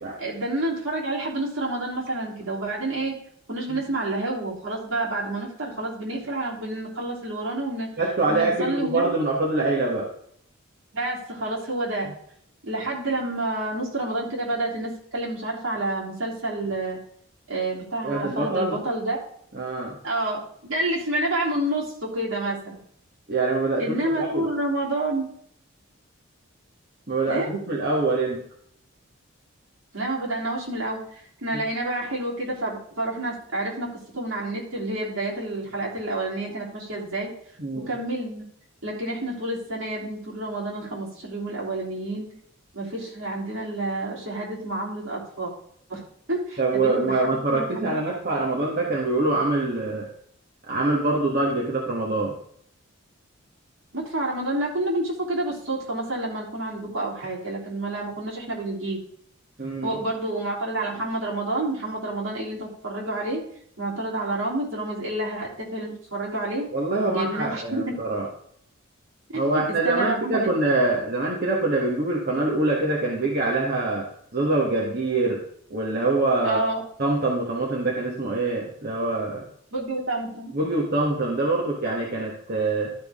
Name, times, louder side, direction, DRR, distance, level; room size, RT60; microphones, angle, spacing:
voice 1, 0.2-3.2 3.5-7.9 8.3-9.1 10.9-12.1 12.6-17.0 17.5-19.2 20.0-22.8 23.8-25.3 27.3-27.5 29.9-31.0 31.4-33.9 34.1-37.3 37.9-38.4 38.8-42.3 42.7-45.5 45.9-46.0 46.3-47.2 47.5-48.0 53.9-59.0 59.8-63.4 63.8-66.6 67.0-67.9 69.8-70.5 76.4-76.8 79.7-80.5, right 2 dB, 70° right, -4 dB, 3.4 m, -29 dB
voice 2, 8.0-10.1 12.1-12.2 18.0-18.8 19.5-20.0 23.3-24.5 27.1-28.4 31.5-31.6 37.6-37.9 46.6-50.1 50.7-52.3 59.6-60.0 66.7-68.3 69.3-74.1 74.3-75.4 75.7-76.7 77.0-79.5 80.5-82.9, right 2 dB, 45° right, -3 dB, 1.5 m, -24 dB
12.0 x 6.2 x 3.6 m, 0.66 s
head